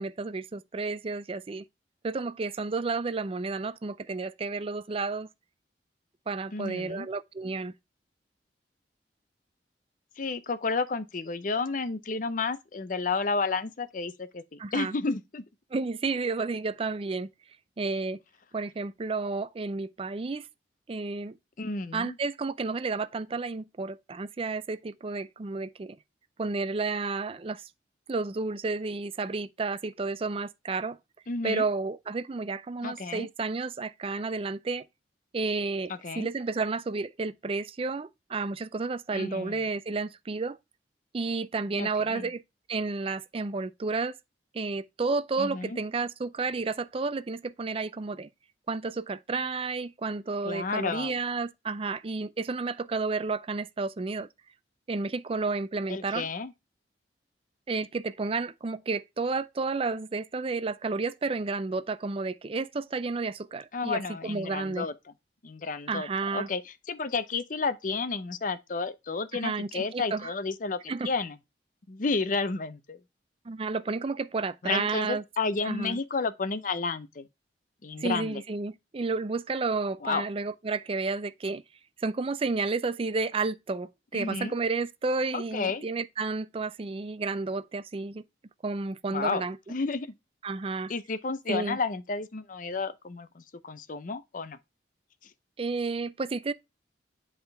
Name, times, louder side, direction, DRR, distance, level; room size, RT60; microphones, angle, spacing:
voice 1, 0.0-1.6 2.0-5.3 6.3-7.7 14.6-14.9 15.7-17.3 17.8-18.2 18.5-20.5 20.9-21.4 21.9-26.0 26.4-27.7 28.1-31.0 31.4-34.8 35.3-40.6 41.1-42.4 42.7-44.2 44.5-48.3 48.7-54.3 54.9-56.3 57.7-64.9 65.9-66.5 69.3-70.3 70.9-71.1 73.5-75.2 75.6-76.0 78.0-81.6 82.0-88.2 88.6-89.6 90.4-90.9 91.5-91.8 95.6-96.5, right 3 dB, 30° right, 0.4 m, -31 dB
voice 2, 6.5-7.1 10.2-15.4 21.6-22.2 31.3-31.6 32.8-33.3 35.9-36.3 39.1-39.6 41.8-42.3 45.4-45.8 50.4-51.1 55.9-56.5 63.7-65.1 65.4-71.4 71.9-73.0 74.6-77.3 77.8-78.4 80.0-80.3 84.1-84.5 85.3-85.8 89.1-89.4 89.7-90.1 90.9-94.6 95.2-95.3, left 4 dB, 50° left, 0.7 m, -31 dB
10.5 x 3.7 x 3.3 m
head